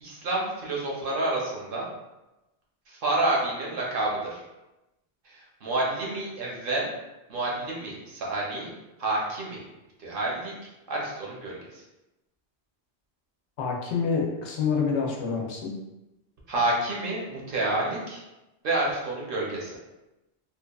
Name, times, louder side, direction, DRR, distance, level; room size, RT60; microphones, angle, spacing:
voice 1, 0.0-1.9 2.9-4.4 5.3-6.9 7.3-8.7 9.0-9.6 10.0-10.5 10.9-11.8 16.5-18.2 18.6-19.8, right 2 dB, 60° right, -4 dB, 0.8 m, -29 dB
voice 2, 13.6-15.7, left 5 dB, 90° left, 0 dB, 0.9 m, -27 dB
2.8 x 2.3 x 2.3 m, 0.98 s
omnidirectional pair, 1.1 m